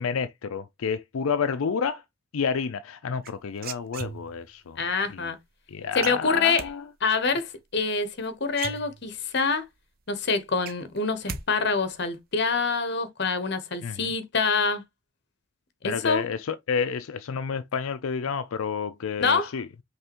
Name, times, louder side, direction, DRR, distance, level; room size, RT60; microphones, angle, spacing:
voice 1, 0.0-2.0 2.3-4.8 5.1-5.3 5.7-6.8 13.8-14.1 15.8-19.7, left 6 dB, 85° left, 0.5 m, -30 dB
sound 1, 3.2-4.5 6.0-6.7 8.1-8.2 8.5-9.3 9.8-9.9 10.2-11.4 11.7-12.2, right 7 dB, 45° right, 0.6 m, -38 dB
voice 2, 4.8-5.4 5.9-6.7 7.0-9.6 10.1-14.8 15.8-16.2 19.2-19.5, left 4 dB, 55° left, 1.0 m, -26 dB
5.5 x 3.3 x 2.9 m
head